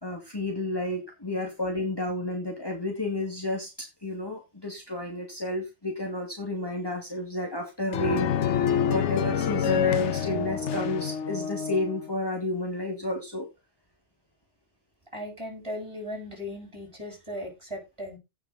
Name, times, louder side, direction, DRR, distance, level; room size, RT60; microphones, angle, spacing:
voice 1, 0.0-8.3 8.9-13.5, left 1 dB, 20° left, 1 dB, 2.3 m, -31 dB
sound 1, 7.9-12.1, left 8 dB, 80° left, 1.2 m, -27 dB
voice 2, 15.1-18.2, left 1 dB, 25° right, 1 dB, 7.0 m, -37 dB
16.5 x 6.4 x 4.1 m, 0.25 s
omnidirectional pair, 1.2 m